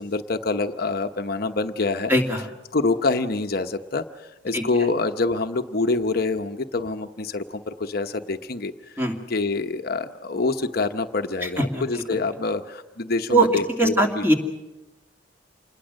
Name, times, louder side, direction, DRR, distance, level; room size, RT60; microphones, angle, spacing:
voice 1, 0.0-2.1 2.7-9.0 9.3-14.2, left 3 dB, 55° left, 6 dB, 0.9 m, -26 dB
voice 2, 2.1-2.5 4.5-4.6 9.0-9.2 11.4-12.0 13.3-13.5 13.8-14.3, right 1 dB, 10° right, 2 dB, 2.5 m, -21 dB
27.5 x 21.0 x 6.4 m, 1.0 s
head